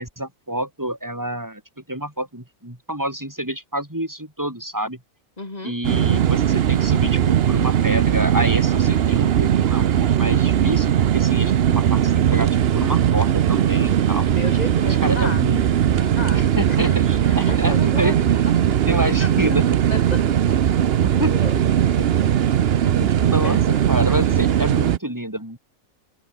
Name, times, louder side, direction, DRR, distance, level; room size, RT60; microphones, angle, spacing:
voice 1, 0.0-1.6 1.9-5.0 5.6-12.5 12.7-14.3 14.9-15.6 16.3-18.3 18.9-19.7 21.0-21.4 22.8-25.6, right 1 dB, 10° right, 4.5 m, -28 dB
voice 2, 5.4-5.7 14.3-15.4 15.9-17.0 17.2-19.6 19.9-21.6 21.9-22.0 23.4-23.6 24.1-24.2, left 2 dB, 25° left, 3.3 m, -34 dB
sound 1, 5.8-25.0, right 10 dB, 55° right, 0.8 m, -19 dB
omnidirectional pair, 1.5 m